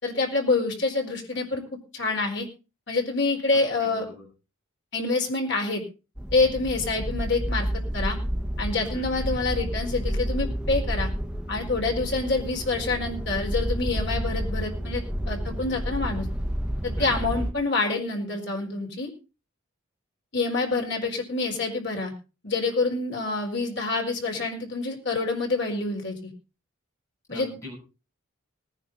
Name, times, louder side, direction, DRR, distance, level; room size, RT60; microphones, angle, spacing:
voice 1, 0.0-1.6 1.9-2.5 2.9-4.1 4.9-5.8 6.3-8.2 8.6-11.1 11.5-16.2 16.8-19.1 20.3-22.1 22.4-26.3 27.3-27.6, left 3 dB, 55° left, 2 dB, 4.3 m, -27 dB
voice 2, 3.5-4.2 8.9-9.4 17.0-17.5 27.3-27.7, left 1 dB, 15° left, -2 dB, 6.5 m, -42 dB
sound 1, 6.2-17.5, equal, 5° right, 1.0 m, -30 dB
19.0 x 10.5 x 4.0 m, 0.32 s
head